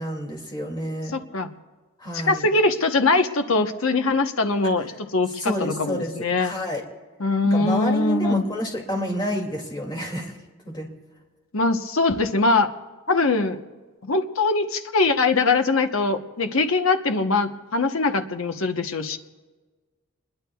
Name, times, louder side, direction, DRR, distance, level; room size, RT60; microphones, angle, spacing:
voice 1, 0.0-1.1 2.0-2.5 5.3-6.8 7.5-10.4 10.6-10.9, equal, 20° left, 0 dB, 2.4 m, -29 dB
voice 2, 1.1-1.5 2.3-6.5 7.2-8.4 11.5-12.7 13.1-13.6 14.1-19.2, left 3 dB, 65° left, 6 dB, 1.0 m, -22 dB
28.0 x 21.5 x 2.3 m, 1.3 s
head